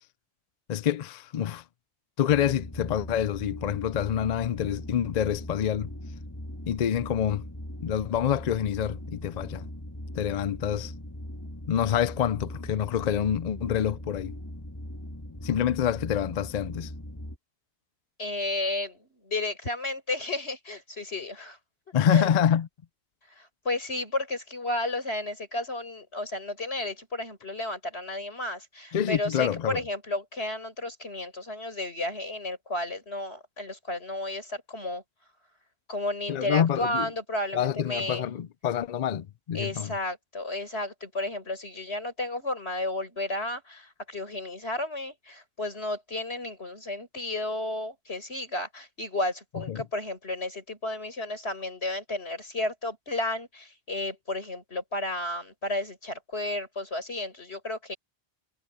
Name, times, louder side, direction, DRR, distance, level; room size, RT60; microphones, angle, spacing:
voice 1, 0.7-1.6 2.2-5.9 6.7-7.5 7.8-9.7 10.2-10.9 11.7-14.4 15.4-16.9 21.9-22.7 28.9-29.8 36.3-37.1 37.5-39.9 49.7-49.8, left 9 dB, 50° left, 0.5 m, -27 dB
sound 1, 2.3-17.4, left 1 dB, 20° left, 2.1 m, -40 dB
voice 2, 18.2-21.6 22.1-22.3 23.4-35.0 35.9-38.2 39.5-58.0, left 2 dB, 85° left, 6.4 m, -32 dB
omnidirectional pair, 1.1 m